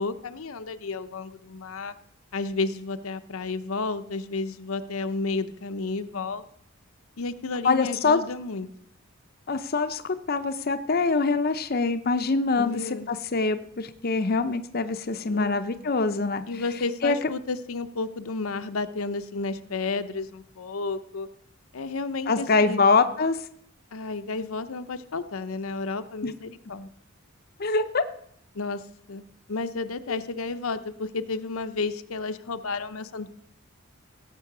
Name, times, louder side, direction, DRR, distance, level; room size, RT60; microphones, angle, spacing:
voice 1, 0.0-1.9 2.3-6.4 7.2-8.7 12.6-13.1 15.2-15.6 16.5-21.3 21.7-22.8 23.9-26.9 28.5-28.8 29.1-29.2 29.5-33.3, left 3 dB, 80° left, 10 dB, 0.7 m, -32 dB
voice 2, 7.6-8.2 9.5-16.6 17.0-17.2 22.3-23.4 26.2-26.3 27.6-28.0 30.1-30.2, left 4 dB, 45° left, 9 dB, 0.6 m, -24 dB
16.5 x 7.5 x 6.0 m, 0.67 s
head